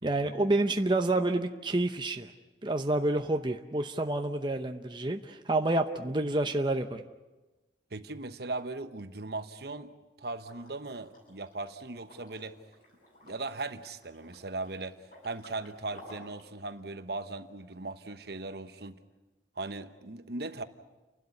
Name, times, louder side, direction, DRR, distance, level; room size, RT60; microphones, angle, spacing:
voice 1, 0.0-2.3 2.6-7.0, right 2 dB, 25° right, 5 dB, 0.8 m, -28 dB
voice 2, 7.9-12.6 13.2-19.0 19.6-20.6, right 3 dB, 55° right, 10 dB, 1.1 m, -39 dB
Liquid, 10.3-16.5, left 1 dB, 45° left, 7.8 m, -55 dB
30.0 x 12.5 x 9.7 m, 1.1 s
head